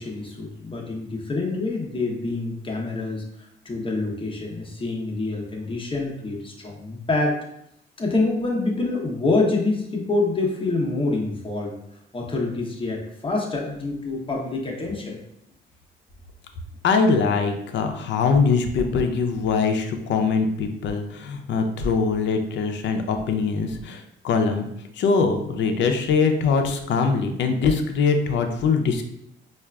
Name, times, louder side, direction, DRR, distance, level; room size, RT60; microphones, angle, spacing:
voice 1, 0.0-3.2 3.6-7.4 8.0-11.7 12.1-15.2, left 3 dB, 25° left, -1 dB, 0.8 m, -26 dB
voice 2, 16.8-24.7 24.9-29.1, left 5 dB, 65° left, 5 dB, 0.5 m, -22 dB
4.6 x 2.4 x 2.3 m, 0.77 s
cardioid pair, 90°, 20 cm